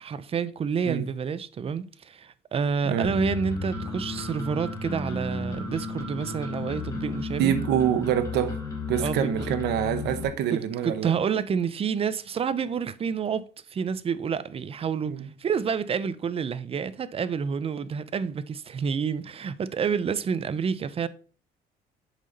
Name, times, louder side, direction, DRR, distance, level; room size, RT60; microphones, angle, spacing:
voice 1, 0.0-7.5 9.0-9.5 10.5-21.1, right 6 dB, 35° right, 0.7 m, -29 dB
sound 1, 3.0-10.2, left 3 dB, 15° left, 3.8 m, -33 dB
voice 2, 7.4-8.6 8.8-11.1 15.1-15.3, right 9 dB, 80° right, 1.0 m, -26 dB
8.1 x 5.9 x 4.0 m
cardioid pair, 110°, 17 cm